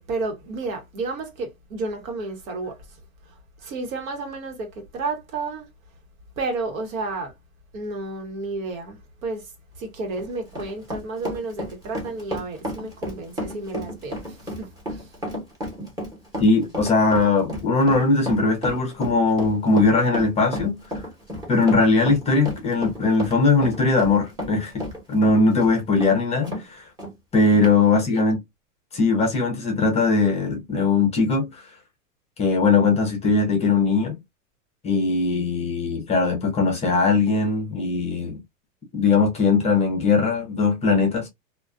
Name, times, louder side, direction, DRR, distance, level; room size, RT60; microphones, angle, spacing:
voice 1, 0.0-2.8 3.3-5.7 6.4-7.3 7.7-9.5 9.8-15.1 28.1-28.3, right 3 dB, 75° right, 1.2 m, -32 dB
Run, 10.0-26.6 27.0-27.1 27.6-27.8, equal, 10° right, 0.9 m, -32 dB
voice 2, 16.4-21.0 21.5-24.8 25.1-26.9 27.3-28.4 28.9-31.7 32.4-34.2 34.8-38.4 38.9-41.3, left 3 dB, 15° left, 0.6 m, -20 dB
2.4 x 2.4 x 2.3 m
supercardioid pair, 140°, 41 cm